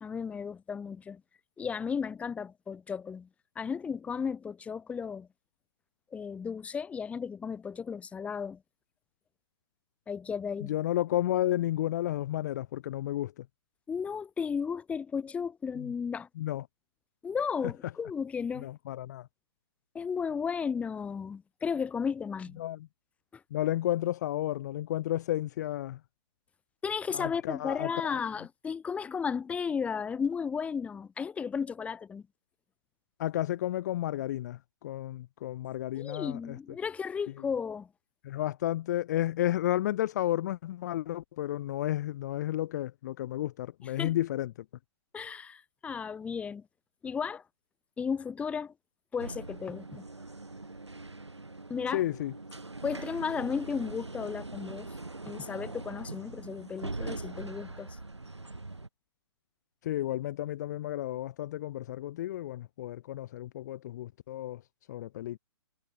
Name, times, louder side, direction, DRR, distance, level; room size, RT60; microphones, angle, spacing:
voice 1, 0.0-1.2 1.6-3.3 3.6-5.3 6.1-8.6 10.1-10.7 13.9-16.3 17.2-18.7 19.9-22.6 23.3-23.4 26.8-32.2 35.9-37.9 44.0-44.2 45.1-46.6 47.0-47.4 48.0-48.7 49.1-50.0 51.7-52.0 52.8-54.9 55.2-58.0, left 6 dB, 10° left, 0.9 m, -34 dB
voice 2, 10.6-13.5 15.8-15.9 16.4-16.6 18.6-19.3 22.6-22.9 23.5-26.0 27.1-28.2 33.2-36.6 38.2-44.5 51.9-52.3 59.8-64.6 64.9-65.4, left 13 dB, 40° left, 0.6 m, -32 dB
sound 1, 49.2-58.9, right 2 dB, 85° right, 2.8 m, -42 dB
figure-of-eight pair, 120°, 14 cm